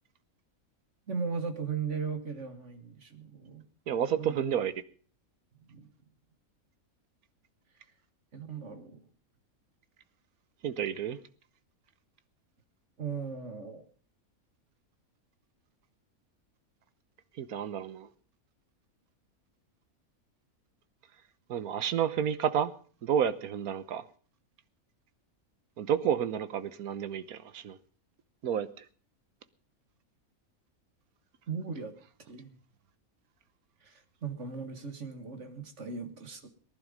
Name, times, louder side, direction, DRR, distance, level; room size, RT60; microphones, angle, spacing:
voice 1, 1.1-3.6 4.1-4.5 5.7-5.9 8.3-9.0 13.0-13.9 31.5-31.9 32.3-32.5 33.8-36.5, right 5 dB, 55° right, 2.0 m, -37 dB
voice 2, 3.9-4.7 10.6-11.2 17.4-18.1 21.5-22.7 23.0-24.0 25.8-27.8 28.4-28.9, right 8 dB, 85° right, 1.5 m, -30 dB
19.0 x 11.0 x 5.2 m
omnidirectional pair, 1.5 m